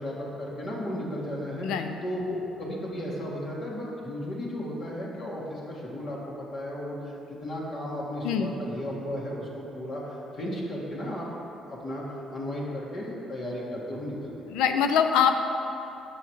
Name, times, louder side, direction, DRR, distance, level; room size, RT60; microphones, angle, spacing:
voice 1, 0.0-1.7 2.0-7.1 7.4-11.3 11.5-14.4, equal, 60° left, -5 dB, 1.7 m, -34 dB
voice 2, 1.6-2.0 8.2-8.5 14.5-15.4, left 7 dB, 85° left, 7 dB, 0.5 m, -23 dB
7.1 x 5.8 x 4.5 m, 2.9 s
supercardioid pair, 75°, 0 cm